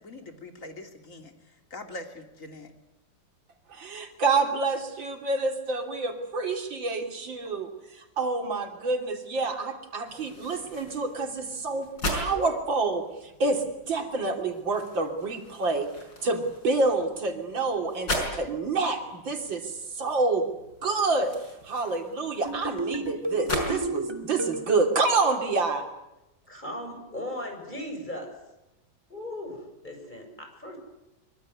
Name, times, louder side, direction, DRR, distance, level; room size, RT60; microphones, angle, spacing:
voice 1, 0.0-1.3 1.7-2.7, left 2 dB, 40° left, 5 dB, 3.2 m, -42 dB
voice 2, 3.7-15.9 16.2-20.5 20.8-21.4 21.6-25.9, right 3 dB, 85° right, 4 dB, 3.7 m, -28 dB
sound 1, 10.1-23.7, left 1 dB, 75° left, 6.5 m, -38 dB
sound 2, 22.4-24.9, right 2 dB, 15° right, 2.5 m, -33 dB
voice 3, 26.5-28.3 29.1-30.8, left 1 dB, 25° left, 3 dB, 7.5 m, -37 dB
24.5 x 24.0 x 9.8 m, 0.92 s
omnidirectional pair, 2.0 m